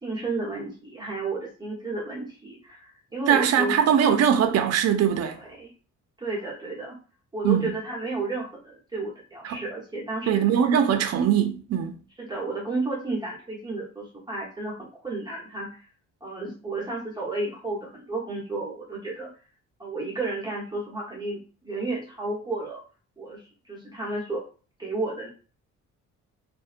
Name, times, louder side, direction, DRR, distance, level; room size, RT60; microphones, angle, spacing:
voice 1, 0.0-3.8 5.4-5.7 6.2-6.9 7.3-10.4 12.2-15.8 16.2-19.3 19.8-22.8 23.2-24.5 24.8-25.3, right 2 dB, 15° right, 1.0 m, -32 dB
voice 2, 3.3-5.4 7.4-7.7 9.4-9.6 10.3-12.0, right 8 dB, 55° right, 0.5 m, -21 dB
2.6 x 2.1 x 2.5 m
cardioid pair, 90°, 30 cm